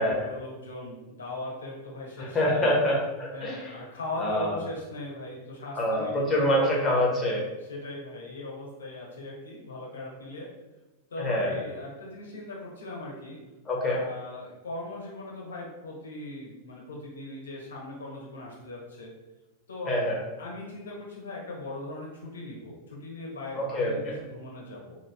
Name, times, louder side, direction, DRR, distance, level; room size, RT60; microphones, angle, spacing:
voice 1, 0.0-2.7 3.3-6.5 7.6-10.5 11.1-13.4 13.8-19.1 19.7-20.0 20.4-25.0, left 2 dB, 65° left, -3 dB, 1.4 m, -39 dB
voice 2, 2.2-3.8 4.2-4.6 5.7-7.5 11.2-11.6 13.6-14.0 19.9-20.2 23.5-24.1, left 1 dB, 20° left, -4 dB, 1.4 m, -26 dB
4.4 x 2.9 x 2.9 m, 1.1 s
figure-of-eight pair, 90°, 0 cm